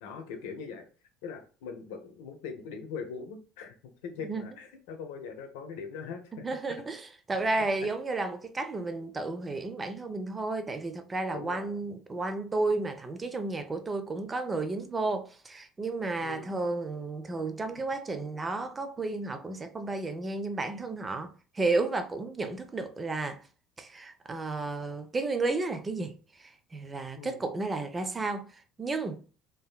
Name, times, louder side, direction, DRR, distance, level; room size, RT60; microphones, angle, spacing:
voice 1, 0.0-0.9 1.2-6.4 11.3-11.8 16.2-16.5 22.4-22.6 27.1-27.4, left 5 dB, 75° left, 0.5 m, -41 dB
voice 2, 6.4-23.4 23.8-29.2, right 3 dB, 25° right, 0.5 m, -32 dB
3.4 x 2.1 x 2.2 m
hypercardioid pair, 70°, 0 cm